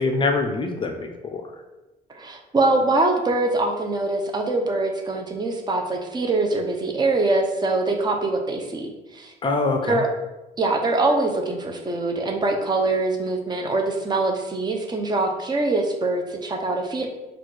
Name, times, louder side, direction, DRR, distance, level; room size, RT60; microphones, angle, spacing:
voice 1, 0.0-1.5 9.4-10.0, left 3 dB, 30° left, 4 dB, 0.5 m, -24 dB
voice 2, 2.1-9.3 9.9-10.1 10.6-17.1, right 2 dB, 25° right, 3 dB, 0.6 m, -23 dB
4.0 x 2.4 x 4.7 m, 1.0 s
cardioid pair, 110°, 17 cm